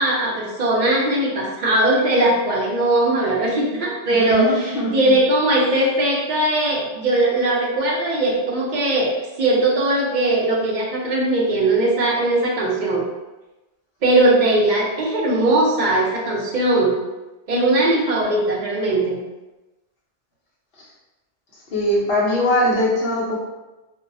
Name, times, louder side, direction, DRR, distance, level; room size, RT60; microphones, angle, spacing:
voice 1, 0.0-9.1 9.4-13.1 14.0-17.0 17.5-19.2, right 1 dB, 55° right, -3 dB, 0.6 m, -19 dB
voice 2, 4.1-5.2 20.8-20.9 21.7-23.4, left 1 dB, 60° left, -5 dB, 0.9 m, -21 dB
2.6 x 2.1 x 2.6 m, 1.1 s
omnidirectional pair, 1.1 m